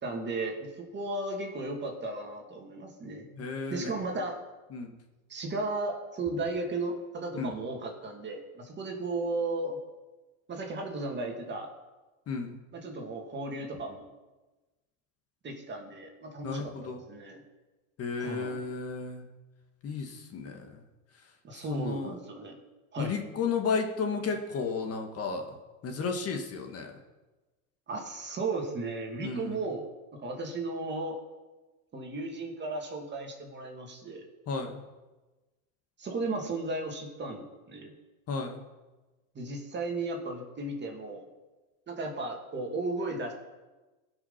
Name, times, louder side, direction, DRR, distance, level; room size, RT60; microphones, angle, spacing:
voice 1, 0.0-4.4 5.3-9.8 10.5-11.7 12.7-14.1 15.4-17.4 18.2-18.6 21.4-22.6 22.9-23.2 27.9-29.8 30.2-31.2 31.9-34.3 36.0-37.9 39.3-41.3 41.9-43.3, right 2 dB, 25° right, 2 dB, 2.6 m, -35 dB
voice 2, 3.4-3.9 4.7-4.9 7.3-7.5 12.3-12.6 16.4-17.0 18.0-19.2 19.8-20.8 21.7-22.1 23.0-25.5 25.8-26.9 29.2-29.6 34.5-34.8 38.3-38.6, left 4 dB, 35° left, 3 dB, 1.7 m, -33 dB
17.0 x 6.2 x 5.7 m, 1.2 s
supercardioid pair, 115°, 44 cm